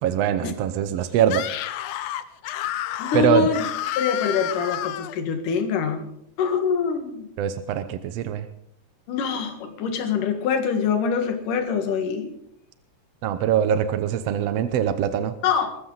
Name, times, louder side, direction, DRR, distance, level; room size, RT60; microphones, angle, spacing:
voice 1, 0.0-1.5 3.1-3.5 7.4-8.5 13.2-15.3, right 9 dB, 70° right, 11 dB, 1.5 m, -23 dB
Screaming, 1.2-5.2, left 12 dB, 90° left, 1.4 m, -30 dB
voice 2, 3.0-3.6 4.0-6.1 6.4-7.3 9.1-12.3 15.4-15.8, left 6 dB, 70° left, 6 dB, 3.3 m, -24 dB
22.0 x 15.0 x 4.0 m, 0.73 s
omnidirectional pair, 3.8 m